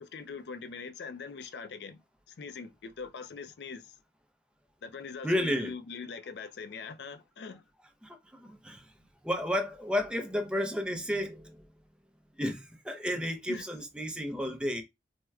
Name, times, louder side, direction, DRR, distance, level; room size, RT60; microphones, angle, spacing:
voice 1, 0.0-2.0 2.3-3.9 4.8-7.6 13.5-13.6, left 5 dB, 75° left, 0.4 m, -42 dB
voice 2, 5.2-5.7 8.0-8.9 9.2-11.6 12.4-14.8, equal, 5° right, 0.5 m, -32 dB
4.3 x 2.1 x 2.3 m
head